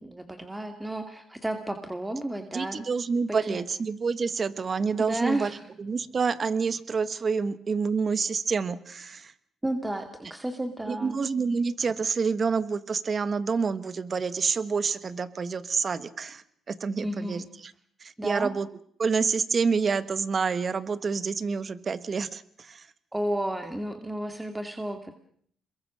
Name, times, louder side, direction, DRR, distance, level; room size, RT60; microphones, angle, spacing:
voice 1, 0.0-2.8 3.5-3.6 5.0-5.6 9.6-11.2 17.0-17.5 18.2-18.5 23.1-25.1, right 1 dB, 10° right, 6 dB, 2.2 m, -32 dB
voice 2, 2.5-5.5 5.8-9.3 10.9-17.7 18.0-18.7 19.0-22.9, right 5 dB, 40° right, 15 dB, 1.4 m, -28 dB
27.5 x 22.0 x 6.4 m, 0.63 s
cardioid pair, 90°, 0 cm